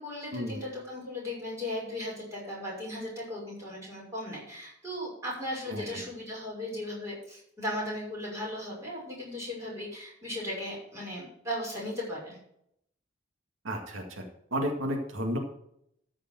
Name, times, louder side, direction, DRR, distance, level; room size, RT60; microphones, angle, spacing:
voice 1, 0.0-12.4, left 1 dB, 15° right, -5 dB, 6.0 m, -37 dB
voice 2, 5.7-6.0 13.6-14.2 14.5-15.4, equal, 85° right, 2 dB, 2.0 m, -32 dB
13.5 x 5.1 x 7.7 m, 0.73 s
head